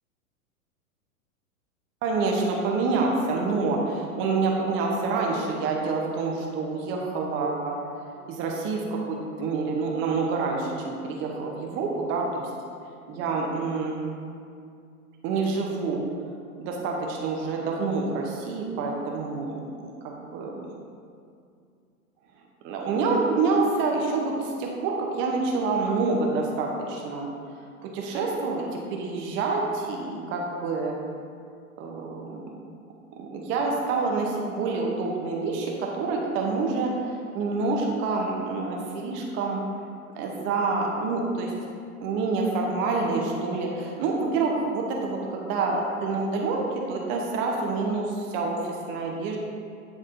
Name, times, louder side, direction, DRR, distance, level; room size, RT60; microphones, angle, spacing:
voice 1, 2.0-7.8 8.3-12.5 13.1-14.0 15.2-16.0 16.6-20.7 22.6-27.3 27.8-31.0 31.8-32.4 33.2-39.6 40.2-41.5 42.0-48.6 48.9-49.4, right 3 dB, 30° right, -1 dB, 0.7 m, -27 dB
9.8 x 3.6 x 2.6 m, 2.4 s
figure-of-eight pair, 105°, 44 cm